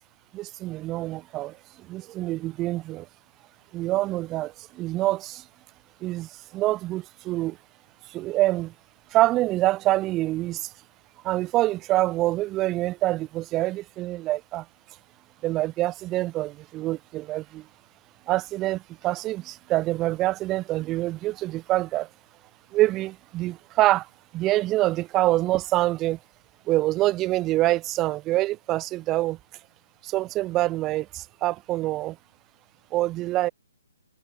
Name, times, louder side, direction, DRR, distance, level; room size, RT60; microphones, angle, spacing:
voice 1, 0.3-3.1 3.7-5.4 6.0-7.6 8.1-8.7 9.1-10.7 11.2-14.7 15.4-17.7 18.3-22.1 22.7-24.1 24.3-26.2 26.7-29.4 30.0-32.2 32.9-33.5, right 16 dB, 15° right, 5.1 m, -26 dB
hypercardioid pair, 160°, 0 cm